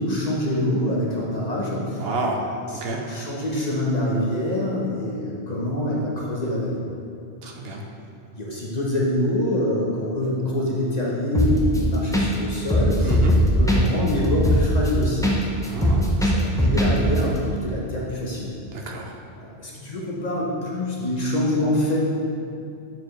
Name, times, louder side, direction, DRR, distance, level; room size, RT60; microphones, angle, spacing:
voice 1, 0.0-2.0 2.7-6.8 8.3-13.2 13.6-15.3 15.8-18.5 19.4-22.0, left 1 dB, 40° left, -4 dB, 0.9 m, -25 dB
voice 2, 2.0-2.4 2.7-3.0 7.4-7.8 13.0-13.4 15.6-16.0 18.7-19.1, right 3 dB, 65° right, 1 dB, 0.8 m, -29 dB
sound 1, 11.3-11.8 12.1-12.3 12.5-15.4 15.6-16.9 17.2-17.3, left 1 dB, 5° left, 0.4 m, -19 dB
7.3 x 4.5 x 3.1 m, 2.6 s
omnidirectional pair, 1.1 m